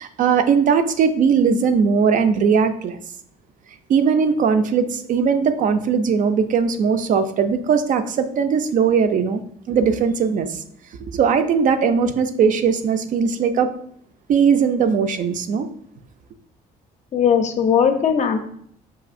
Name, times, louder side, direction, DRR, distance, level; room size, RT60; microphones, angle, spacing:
voice 1, 0.0-3.0 3.9-9.4 9.7-10.6 11.1-13.7 14.3-15.7, right 6 dB, 50° right, 9 dB, 0.4 m, -19 dB
voice 2, 17.1-18.4, left 7 dB, 45° left, 7 dB, 0.5 m, -18 dB
4.8 x 2.6 x 2.5 m, 0.66 s
cardioid pair, 110°, 17 cm